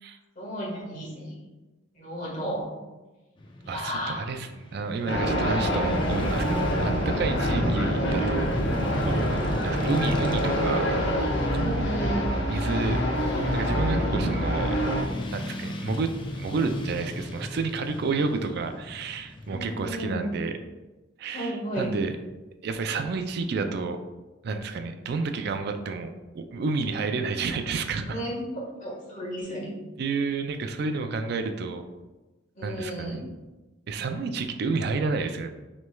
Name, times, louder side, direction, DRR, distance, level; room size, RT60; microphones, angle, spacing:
voice 1, 0.3-1.3 1.9-2.7 3.6-4.2 7.5-7.7 11.6-12.3 19.5-20.2 21.3-21.9 28.0-29.7 32.5-33.2, equal, 40° left, -4 dB, 1.5 m, -33 dB
Motorcycle / Traffic noise roadway noise, 3.4-20.0, left 1 dB, 25° left, 0.5 m, -38 dB
voice 2, 3.7-8.5 9.0-9.3 9.6-10.9 12.5-13.0 13.5-14.8 15.3-20.5 21.2-22.1 22.6-24.0 24.4-26.1 26.3-28.2 30.0-31.8 32.6-33.3 33.9-35.5, right 4 dB, 60° right, 7 dB, 0.3 m, -30 dB
sound 1, 5.1-15.0, equal, 75° left, 1.0 m, -26 dB
6.2 x 3.2 x 2.2 m, 1.1 s
head